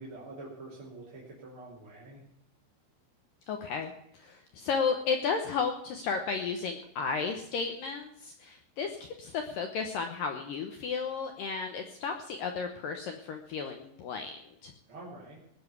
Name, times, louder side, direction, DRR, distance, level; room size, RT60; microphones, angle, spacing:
voice 1, 0.0-2.2 14.9-15.4, right 2 dB, 30° right, -5 dB, 3.1 m, -46 dB
voice 2, 3.5-14.3 14.6-14.7, left 5 dB, 85° left, 5 dB, 1.9 m, -33 dB
19.0 x 7.1 x 8.3 m, 0.77 s
omnidirectional pair, 5.5 m